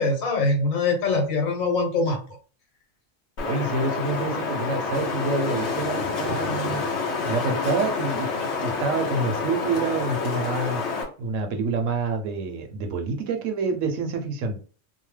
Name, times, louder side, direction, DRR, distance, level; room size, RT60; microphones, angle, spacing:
voice 1, 0.0-2.2, left 3 dB, 80° left, 2 dB, 1.3 m, -23 dB
Wind, 3.4-11.0, left 4 dB, 60° left, 0.9 m, -28 dB
voice 2, 3.4-6.8 7.3-8.3 8.6-10.8 11.2-14.6, right 3 dB, 75° right, 5 dB, 1.0 m, -27 dB
2.8 x 2.0 x 3.2 m, 0.39 s
omnidirectional pair, 1.4 m